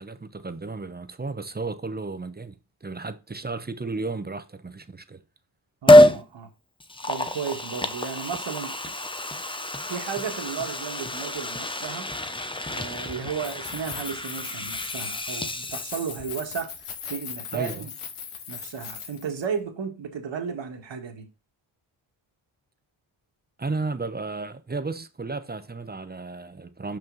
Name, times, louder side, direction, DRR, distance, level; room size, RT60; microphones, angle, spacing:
voice 1, 0.0-5.2 17.5-17.9 23.6-27.0, right 3 dB, 20° right, 0.8 m, -33 dB
voice 2, 5.8-6.5 7.0-8.7 9.9-12.1 12.7-16.7 17.1-17.9 18.5-21.3, right 6 dB, 60° right, 1.9 m, -34 dB
Liquid, 5.9-6.2 6.8-16.4 16.8-16.9, left 1 dB, 10° left, 0.7 m, -24 dB
Keys jangling, 13.4-19.4, left 7 dB, 85° left, 1.4 m, -38 dB
5.6 x 5.4 x 4.0 m
cardioid pair, 70°, 49 cm